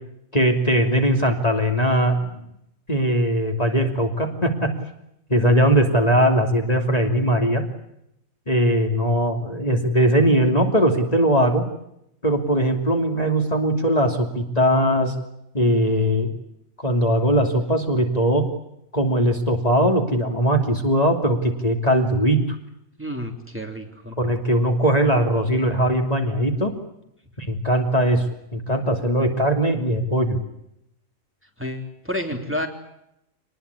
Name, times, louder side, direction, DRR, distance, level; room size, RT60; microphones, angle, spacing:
voice 1, 0.3-2.4 2.9-4.7 5.3-7.6 8.5-11.6 12.2-15.1 15.5-16.3 16.8-18.4 18.9-22.4 24.2-26.7 27.4-28.3 28.5-30.4, right 1 dB, 25° left, 4 dB, 3.0 m, -20 dB
voice 2, 23.0-24.2 31.6-32.7, left 1 dB, 10° right, 4 dB, 3.2 m, -30 dB
27.0 x 20.5 x 8.4 m, 0.79 s
omnidirectional pair, 1.5 m